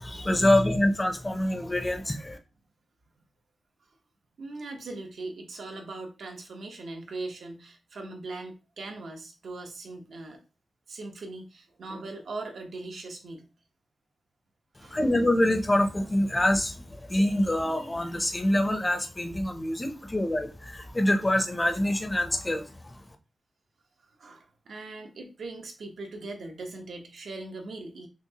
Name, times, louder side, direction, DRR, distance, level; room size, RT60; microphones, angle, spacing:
voice 1, 0.0-2.4 14.8-23.0, left 1 dB, 15° left, 6 dB, 0.5 m, -25 dB
voice 2, 4.4-10.4 10.9-13.5 14.8-15.1 24.2-28.1, right 2 dB, 80° right, 2 dB, 0.9 m, -40 dB
5.9 x 2.0 x 2.8 m, 0.30 s
wide cardioid pair, 160°, 0 cm